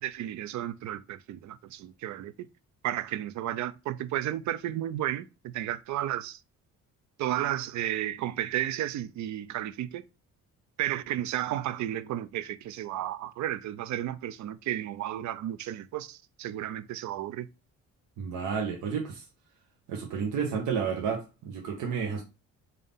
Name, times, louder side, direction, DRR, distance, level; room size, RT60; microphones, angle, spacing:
voice 1, 0.0-2.5 2.8-6.4 7.2-10.0 10.8-17.5, right 12 dB, 70° right, 0.5 m, -33 dB
voice 2, 18.2-19.2 19.9-22.2, right 6 dB, 85° right, 1.0 m, -31 dB
3.8 x 2.7 x 3.5 m
cardioid pair, 90°, 30 cm